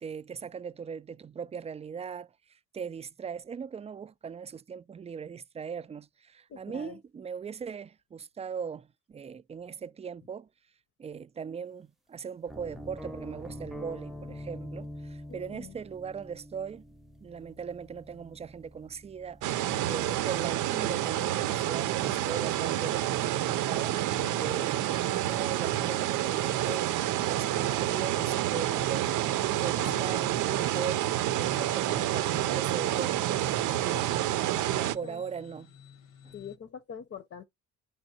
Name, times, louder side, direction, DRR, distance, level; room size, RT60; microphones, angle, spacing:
voice 1, 0.0-10.5 11.0-16.8 17.2-34.2 34.6-35.7 36.2-36.4, right 6 dB, 20° right, 0.3 m, -40 dB
voice 2, 6.5-7.0 15.3-15.7 24.2-24.7 29.8-30.2 34.7-35.2 36.3-37.5, left 7 dB, 45° left, 0.7 m, -44 dB
sound 1, 12.5-20.4, left 1 dB, ahead, 0.7 m, -45 dB
sound 2, 19.4-35.0, right 13 dB, 85° right, 0.6 m, -28 dB
sound 3, 20.6-36.6, left 8 dB, 80° left, 1.2 m, -52 dB
10.5 x 3.5 x 2.8 m
cardioid pair, 90°, 30 cm